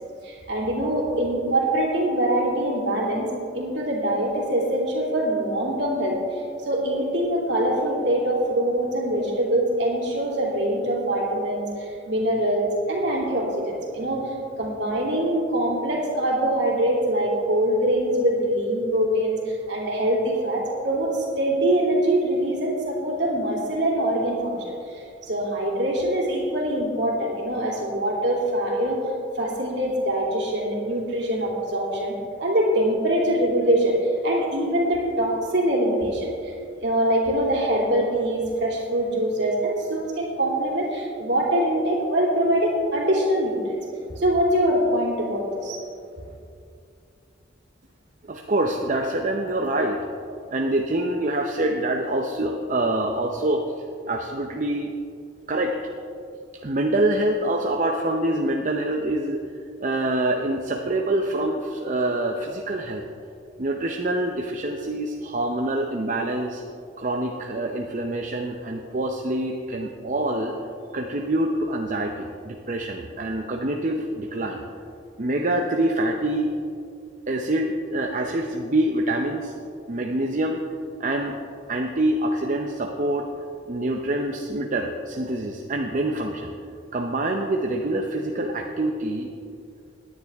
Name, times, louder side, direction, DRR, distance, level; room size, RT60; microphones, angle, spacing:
voice 1, 0.2-29.0 29.3-43.8 44.1-45.8, right 1 dB, 60° right, -3 dB, 2.9 m, -24 dB
voice 2, 48.2-50.1 50.5-53.7 54.1-54.9 55.5-55.8 56.6-59.4 59.8-63.0 63.6-66.6 67.0-70.5 70.9-74.6 75.2-76.5 77.3-79.5 79.9-80.6 81.0-81.4 81.7-83.3 83.7-86.5 86.9-89.3, right 1 dB, 40° right, 2 dB, 0.7 m, -25 dB
18.0 x 10.0 x 3.5 m, 2.5 s
head